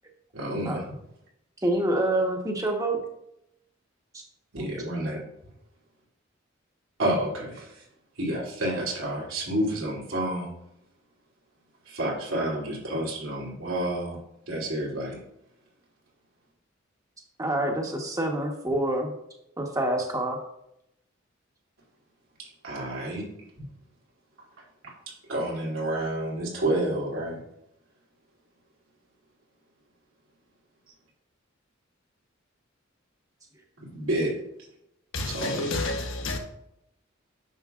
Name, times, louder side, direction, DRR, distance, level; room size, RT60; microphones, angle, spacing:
voice 1, 0.3-0.8 4.5-5.2 7.0-7.8 8.2-10.5 11.9-14.2 14.5-15.2 22.6-23.2 24.8-24.9 25.3-27.4 33.8-34.3 35.3-35.7, right 1 dB, 90° right, 2.9 m, -29 dB
voice 2, 1.6-3.0 4.1-4.2 17.4-19.1 19.6-20.4, right 1 dB, 15° right, 1.1 m, -26 dB
voice 3, 35.1-36.4, left 2 dB, 80° left, 1.4 m, -30 dB
9.3 x 6.9 x 2.4 m
head